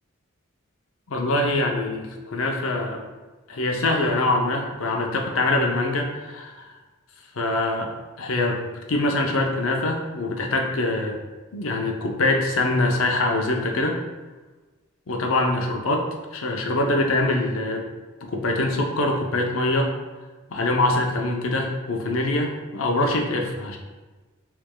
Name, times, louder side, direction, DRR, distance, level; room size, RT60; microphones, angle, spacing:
voice 1, 1.1-3.0 3.5-6.7 7.4-8.6 8.9-11.2 11.5-14.0 15.1-16.0 16.3-17.8 18.2-19.9 20.5-23.8, left 2 dB, 85° left, 2 dB, 0.6 m, -24 dB
4.7 x 3.4 x 2.2 m, 1.2 s
head